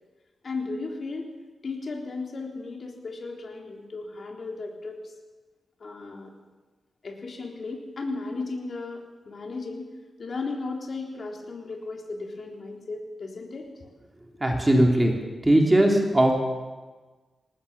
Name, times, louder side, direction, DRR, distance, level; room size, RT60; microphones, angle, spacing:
voice 1, 0.4-1.3 1.6-5.0 5.8-6.3 7.0-9.9 10.2-13.7, left 3 dB, 50° left, 1 dB, 3.8 m, -35 dB
voice 2, 14.4-15.1 15.4-16.3, right 1 dB, 15° right, 1 dB, 3.2 m, -19 dB
20.0 x 19.0 x 7.2 m, 1.3 s
wide cardioid pair, 140°, 0 cm